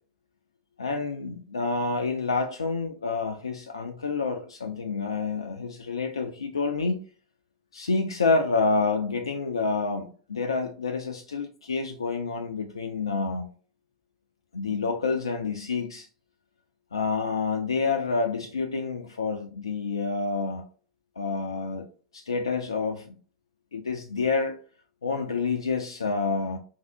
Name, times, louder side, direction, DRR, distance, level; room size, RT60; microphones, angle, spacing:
voice 1, 0.8-7.0 7.7-13.5 14.5-16.1 16.9-20.6 21.2-21.9 22.1-23.2 23.7-24.6 25.0-26.6, left 4 dB, 75° left, 0.3 m, -28 dB
3.5 x 2.0 x 2.5 m
figure-of-eight pair, 85°, 3 cm